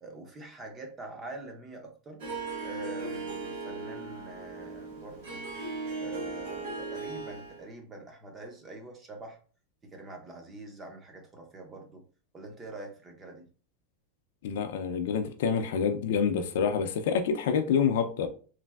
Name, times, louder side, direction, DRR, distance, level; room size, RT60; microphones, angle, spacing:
voice 1, 0.0-2.2 2.6-5.4 5.9-9.4 9.8-12.0 12.3-13.5, right 2 dB, 15° right, 0.5 m, -45 dB
Harp, 2.2-7.7, right 3 dB, 50° right, 1.1 m, -37 dB
voice 2, 14.4-18.3, left 6 dB, 65° left, 0.3 m, -27 dB
3.1 x 2.5 x 2.2 m
supercardioid pair, 175°, 0 cm